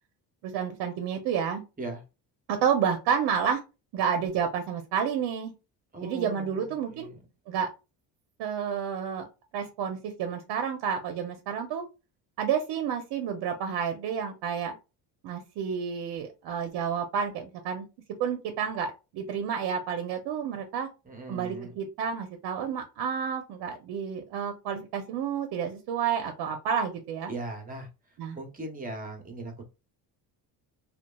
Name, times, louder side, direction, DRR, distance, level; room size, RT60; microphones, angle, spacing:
voice 1, 0.4-1.6 2.5-3.6 3.9-5.5 6.0-7.1 7.5-7.7 8.4-9.3 9.5-11.8 12.4-14.8 15.2-17.9 18.2-20.9 21.3-27.3 28.2-28.4, right 7 dB, 70° right, 6 dB, 0.6 m, -30 dB
voice 2, 5.9-7.2 21.0-21.8 27.3-27.9 28.3-29.7, right 2 dB, 20° right, 4 dB, 0.8 m, -39 dB
2.8 x 2.3 x 2.2 m, 0.29 s
cardioid pair, 110°, 41 cm